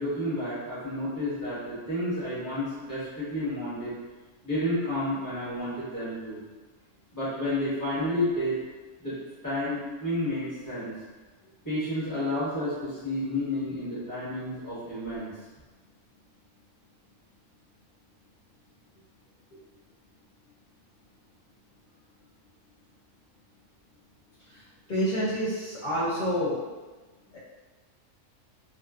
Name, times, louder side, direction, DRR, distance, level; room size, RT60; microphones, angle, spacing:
voice 1, 0.0-4.0 4.4-6.4 7.1-8.5 9.0-9.2 9.4-10.9 11.6-15.3, left 1 dB, 15° left, -13 dB, 1.2 m, -30 dB
voice 2, 24.9-26.6, equal, 65° left, -10 dB, 0.5 m, -27 dB
2.5 x 2.4 x 2.3 m, 1.3 s
omnidirectional pair, 1.5 m